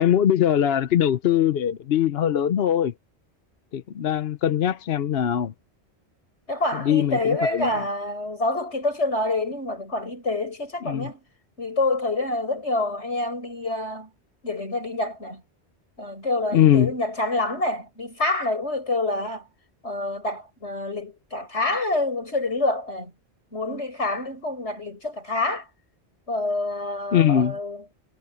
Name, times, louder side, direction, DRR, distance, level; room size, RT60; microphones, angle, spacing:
voice 1, 0.0-2.9 3.7-5.5 6.7-7.7 10.8-11.1 16.5-16.9 27.1-27.6, left 10 dB, 65° left, 0.9 m, -21 dB
voice 2, 6.5-11.2 11.6-14.1 14.4-15.4 16.0-19.5 19.8-23.1 23.5-25.7 26.3-27.8, left 2 dB, 90° left, 6.9 m, -27 dB
omnidirectional pair, 1.1 m